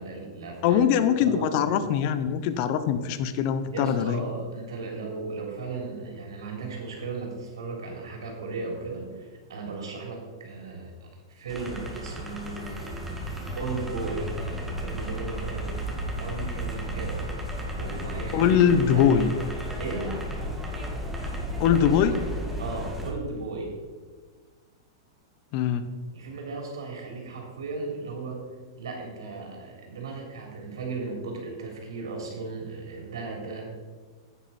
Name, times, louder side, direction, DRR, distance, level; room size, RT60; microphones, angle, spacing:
voice 1, 0.0-1.6 3.7-14.3 14.7-15.8 16.2-17.2 17.8-19.1 19.8-20.1 22.6-23.7 26.1-28.4 28.8-33.6, right 3 dB, 85° right, 0 dB, 3.3 m, -36 dB
voice 2, 0.6-4.2 18.3-19.3 21.6-22.2 25.5-25.8, left 8 dB, 45° left, 11 dB, 0.9 m, -22 dB
sound 1, 11.5-23.1, equal, 5° right, 1.8 m, -33 dB
10.5 x 9.1 x 4.4 m, 1.5 s
hypercardioid pair, 135°, 2 cm